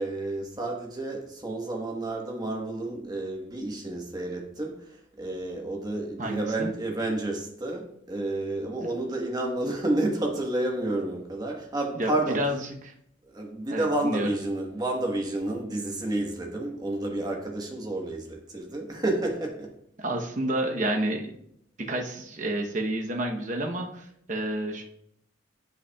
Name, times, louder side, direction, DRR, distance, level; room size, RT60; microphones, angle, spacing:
voice 1, 0.0-12.4 13.2-19.7, right 2 dB, 20° right, 1 dB, 1.2 m, -30 dB
voice 2, 6.2-6.7 12.0-12.6 12.8-12.9 13.7-14.3 20.0-21.3 21.8-24.8, right 1 dB, 45° right, 2 dB, 0.9 m, -29 dB
9.8 x 5.7 x 2.3 m, 0.72 s
head